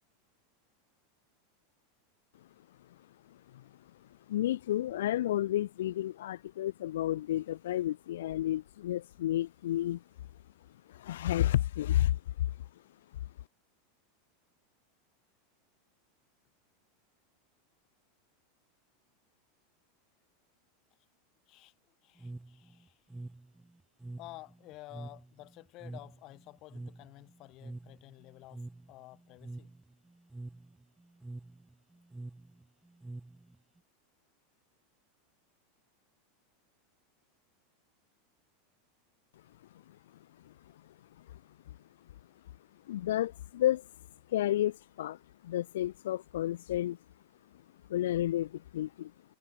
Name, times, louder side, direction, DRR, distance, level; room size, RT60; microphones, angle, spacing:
voice 1, 3.3-3.7 4.3-10.0 10.9-12.5 39.9-40.0 40.4-40.5 41.2-41.4 41.7-41.8 42.9-43.9 44.3-47.0 47.9-49.1, left 13 dB, 85° left, 0.5 m, -31 dB
voice 2, 22.0-23.0 24.2-29.7, left 19 dB, 40° left, 2.3 m, -52 dB
sound 1, 22.2-33.8, right 2 dB, 5° right, 0.4 m, -47 dB
supercardioid pair, 150°, 0 cm